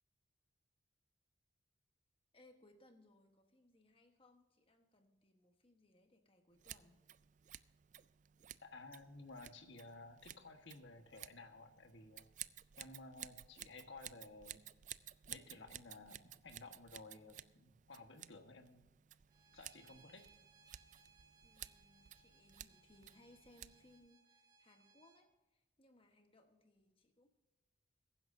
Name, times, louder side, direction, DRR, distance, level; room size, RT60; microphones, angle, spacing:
voice 1, 2.3-7.0 21.4-27.3, left 1 dB, 30° left, 5 dB, 1.3 m, -67 dB
Scissors, 6.6-24.1, right 12 dB, 40° right, 0.3 m, -55 dB
voice 2, 8.6-12.3 12.8-14.6 15.3-18.9 19.5-20.3, left 2 dB, 70° left, 5 dB, 1.5 m, -55 dB
Bowed string instrument, 19.3-25.2, right 4 dB, 20° right, 1.6 m, -69 dB
21.5 x 10.5 x 2.7 m, 1.1 s
head